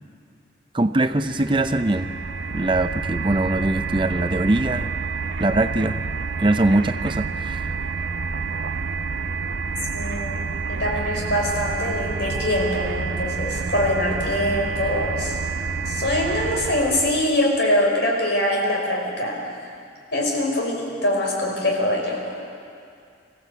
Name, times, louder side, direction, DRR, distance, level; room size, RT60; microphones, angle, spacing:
voice 1, 0.7-2.1 2.5-4.9 5.4-6.0 6.4-7.7, right 2 dB, 25° right, 9 dB, 0.5 m, -22 dB
sound 1, 1.1-17.3, right 4 dB, 65° right, 0.6 m, -28 dB
voice 2, 9.9-15.4 15.8-19.4 20.1-22.4, left 1 dB, 60° left, -1 dB, 5.2 m, -23 dB
26.5 x 15.5 x 8.2 m, 2.4 s
head